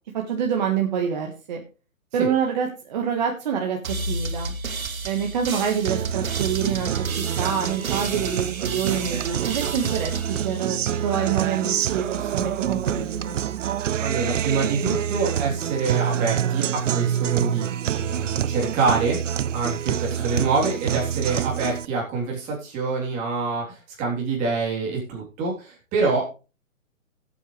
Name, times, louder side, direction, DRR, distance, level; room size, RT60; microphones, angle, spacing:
voice 1, 0.1-1.6 2.1-3.8 4.1-4.5 5.0-10.1 10.4-13.4, right 7 dB, 35° right, 1 dB, 1.5 m, -26 dB
sound 1, 3.8-11.3, right 3 dB, 85° right, 2.7 m, -33 dB
Guitar, 5.9-21.8, right 9 dB, 65° right, 0.7 m, -26 dB
voice 2, 14.0-17.7 17.9-19.2 19.5-26.3, right 4 dB, 15° right, -2 dB, 3.4 m, -26 dB
17.0 x 8.3 x 3.3 m, 0.33 s
hypercardioid pair, 165°, 40 cm